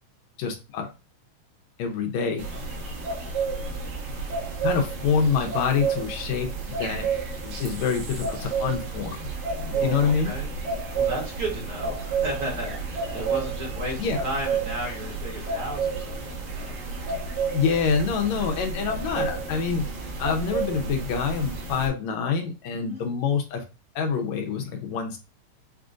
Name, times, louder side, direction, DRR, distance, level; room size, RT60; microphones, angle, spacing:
voice 1, 0.4-0.9 1.8-2.5 4.6-7.1 7.4-9.3 9.6-10.3 14.0-14.2 17.5-19.9 20.2-23.6 24.0-25.2, left 6 dB, 75° left, 3 dB, 2.0 m, -26 dB
sound 1, 2.4-21.9, right 4 dB, 75° right, 2.6 m, -31 dB
voice 2, 2.8-3.1 9.7-10.5 10.8-16.8 22.7-23.1, right 1 dB, 55° right, -2 dB, 2.1 m, -34 dB
6.7 x 2.5 x 2.5 m, 0.28 s
omnidirectional pair, 3.3 m